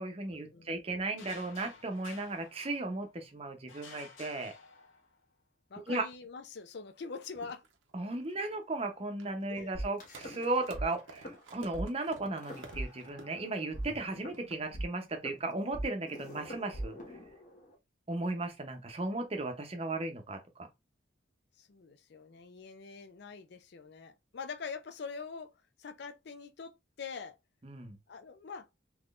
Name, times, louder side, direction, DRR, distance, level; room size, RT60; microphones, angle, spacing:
voice 1, 0.0-4.5 5.9-6.0 7.9-17.0 18.1-20.4 27.6-28.0, right 2 dB, 30° right, 0.7 m, -36 dB
sound 1, 1.2-3.2 3.7-5.2, left 4 dB, 80° left, 0.9 m, -52 dB
voice 2, 5.7-7.6 9.5-9.7 21.6-25.5 25.8-27.4 28.1-28.7, left 5 dB, 55° left, 0.5 m, -44 dB
sound 2, 7.3-15.7, right 3 dB, 85° right, 0.8 m, -53 dB
sound 3, 9.7-10.8 11.1-11.3 11.7-11.8 12.4-13.4 13.7-17.7, right 1 dB, 40° left, 0.9 m, -41 dB
3.7 x 3.0 x 2.4 m
head